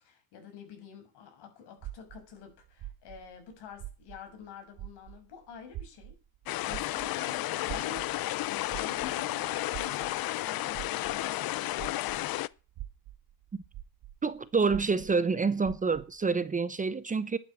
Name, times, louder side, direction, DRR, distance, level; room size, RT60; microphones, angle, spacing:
voice 1, 0.0-6.1 6.6-8.0 8.5-12.3, left 6 dB, 75° left, 6.6 m, -48 dB
sound 1, 1.8-4.5 4.7-12.3 12.7-16.2, right 13 dB, 70° right, 1.4 m, -45 dB
sound 2, 6.5-12.5, left 16 dB, 60° left, 0.6 m, -32 dB
voice 2, 14.2-17.4, right 4 dB, 20° right, 0.8 m, -27 dB
11.5 x 9.1 x 8.7 m
cardioid pair, 145°, 40 cm